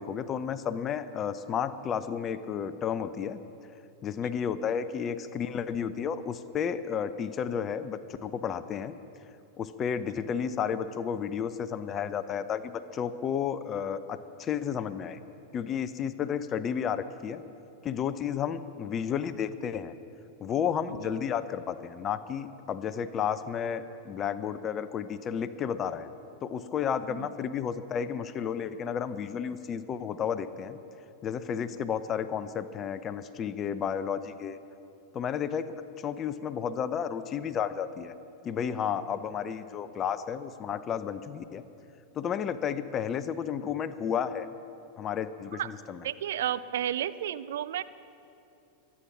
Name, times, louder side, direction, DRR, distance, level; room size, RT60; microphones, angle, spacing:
voice 1, 0.0-3.4 4.0-9.0 9.6-15.2 15.5-17.4 17.8-19.9 20.4-26.1 26.4-30.8 31.2-34.6 35.1-38.1 38.4-41.6 42.1-44.5 45.0-46.0, left 8 dB, 30° left, 13 dB, 0.6 m, -32 dB
voice 2, 46.0-47.8, right 11 dB, 60° right, 15 dB, 0.4 m, -32 dB
24.0 x 8.6 x 5.9 m, 2.8 s
figure-of-eight pair, 90°, 0 cm